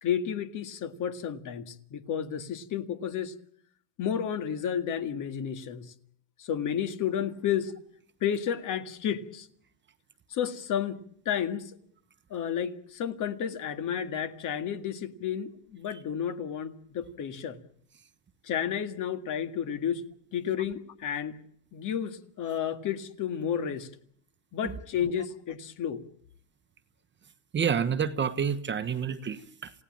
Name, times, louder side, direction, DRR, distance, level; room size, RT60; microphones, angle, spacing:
voice 1, 0.0-3.3 4.0-5.9 6.4-7.7 8.2-9.5 10.3-11.0 11.3-11.7 12.3-17.6 18.4-20.0 20.3-21.4 21.7-23.9 24.5-26.0, left 8 dB, 45° left, 1.9 m, -31 dB
voice 2, 27.5-29.7, right 7 dB, 25° right, 1.3 m, -29 dB
28.0 x 17.0 x 8.8 m
supercardioid pair, 120°, 44 cm